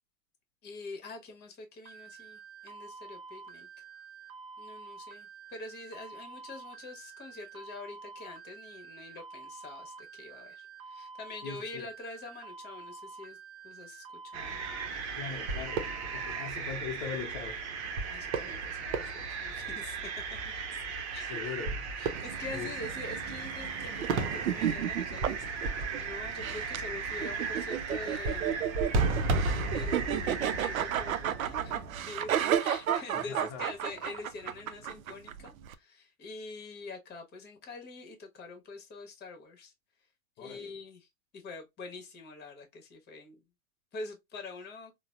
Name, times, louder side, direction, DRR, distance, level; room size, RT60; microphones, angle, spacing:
voice 1, 0.6-3.7 4.6-13.4 13.6-14.0 14.3-14.6 18.1-20.1 21.1-21.5 21.9-28.8 29.4-39.7 40.4-41.1 41.3-43.4 43.9-44.9, left 3 dB, 25° left, 1.1 m, -45 dB
sound 1, 1.9-16.5, right 5 dB, 30° right, 0.5 m, -48 dB
voice 2, 11.4-11.9 15.1-17.6 21.3-21.8 22.5-22.7 33.1-33.7 40.4-40.7, left 7 dB, 40° left, 0.6 m, -40 dB
sound 2, 14.3-32.0, right 4 dB, 55° right, 0.8 m, -34 dB
sound 3, 22.1-35.7, right 10 dB, 80° right, 0.5 m, -33 dB
3.9 x 2.1 x 2.2 m
hypercardioid pair, 100°, 41 cm